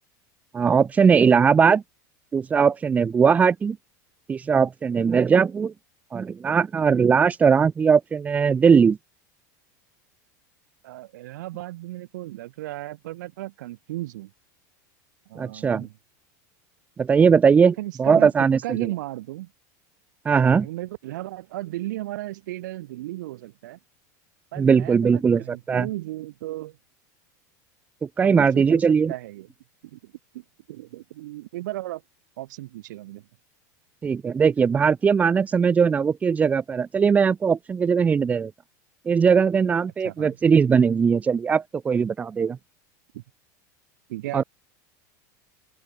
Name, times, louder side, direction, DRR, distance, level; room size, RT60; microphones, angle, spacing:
voice 1, 0.5-1.8 2.3-3.8 4.3-5.7 6.1-9.0 15.4-15.9 17.0-18.6 20.3-20.7 24.6-25.9 28.0-29.1 34.0-38.5 39.1-42.6 44.3-44.4, right 6 dB, 15° right, 0.6 m, -19 dB
voice 2, 10.8-14.3 15.3-15.9 17.8-18.3 18.6-19.5 20.6-23.8 24.5-26.8 28.2-28.8 29.1-29.5 29.9-32.0 32.4-33.2 40.0-40.4 43.1-43.2 44.1-44.4, right 16 dB, 85° right, 3.6 m, -35 dB
open air
supercardioid pair, 150°, 10 cm